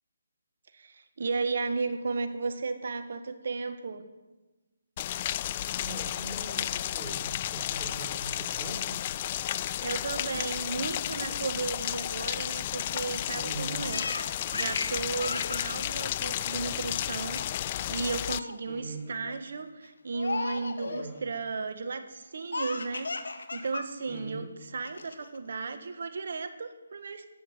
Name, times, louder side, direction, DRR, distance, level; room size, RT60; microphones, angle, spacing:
voice 1, 0.7-4.0 9.8-24.5 24.7-27.3, right 4 dB, 55° right, 9 dB, 1.6 m, -34 dB
Rain, 5.0-18.4, left 12 dB, 30° left, 0.4 m, -33 dB
voice 2, 5.7-7.2 7.5-9.0 13.3-13.8 18.7-19.1 20.8-21.3 24.1-24.5, right 2 dB, 15° right, -6 dB, 4.3 m, -41 dB
Laughter, 13.9-17.0 17.4-17.7 18.0-18.6 19.1-19.4 20.1-21.1 22.5-23.9 24.2-24.3 24.8-25.4, left 3 dB, 70° left, 1.7 m, -36 dB
15.5 x 10.0 x 9.3 m, 1.2 s
figure-of-eight pair, 145°, 0 cm